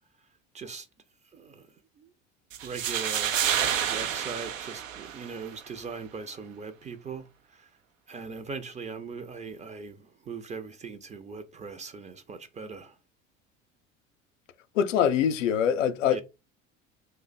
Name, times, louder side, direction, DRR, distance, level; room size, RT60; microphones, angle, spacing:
voice 1, 0.5-0.9 1.3-1.7 2.0-2.1 2.6-3.4 3.9-7.3 7.5-7.7 8.1-13.0 16.0-16.2, right 5 dB, 20° right, 0.5 m, -40 dB
sound 1, 2.5-5.5, right 9 dB, 80° right, 0.5 m, -29 dB
voice 2, 14.8-16.2, left 8 dB, 75° left, 0.5 m, -24 dB
2.5 x 2.1 x 3.9 m
figure-of-eight pair, 65°, 38 cm